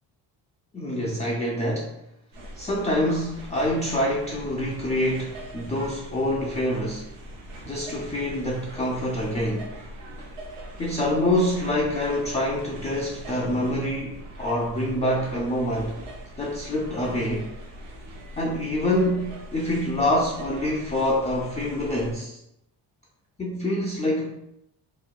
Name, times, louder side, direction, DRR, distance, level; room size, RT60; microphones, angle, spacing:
voice 1, 0.7-1.9 2.6-7.1 7.6-9.7 10.8-16.0 16.4-17.5 18.4-22.4 23.4-24.3, left 1 dB, 15° left, -4 dB, 0.4 m, -26 dB
sound 1, 2.3-22.2, right 1 dB, 85° right, 0.7 m, -41 dB
2.9 x 2.0 x 2.2 m, 0.80 s
supercardioid pair, 60°, 48 cm